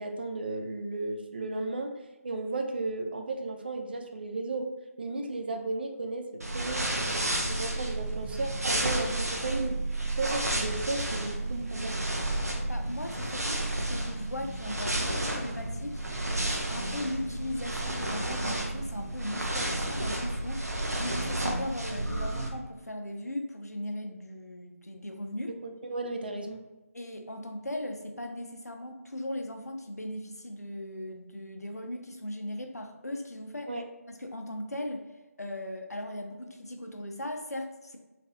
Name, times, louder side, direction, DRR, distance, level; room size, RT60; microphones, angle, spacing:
voice 1, 0.0-1.9 2.2-4.7 5.0-9.8 10.1-12.0 25.5-26.6 33.7-33.8, right 2 dB, 40° right, 4 dB, 0.3 m, -34 dB
sound 1, 6.4-22.5, right 1 dB, 75° right, 0.7 m, -31 dB
voice 2, 12.7-16.0 16.5-25.5 26.9-33.8 34.1-35.1 35.4-38.0, left 1 dB, 85° left, 4 dB, 0.6 m, -38 dB
3.3 x 3.2 x 2.6 m, 1.1 s
figure-of-eight pair, 155°, 8 cm